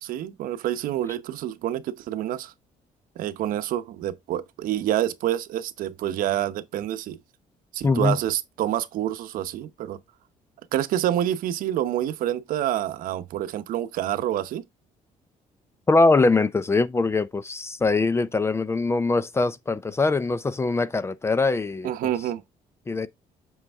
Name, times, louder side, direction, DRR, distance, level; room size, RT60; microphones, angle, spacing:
voice 1, 0.0-2.5 3.2-7.2 7.7-10.0 10.7-14.6 21.8-22.4, right 12 dB, 75° right, 0.9 m, -27 dB
voice 2, 7.8-8.2 15.9-22.1 22.9-23.1, left 3 dB, 20° left, 0.4 m, -22 dB
7.9 x 5.3 x 3.5 m
cardioid pair, 135°, 14 cm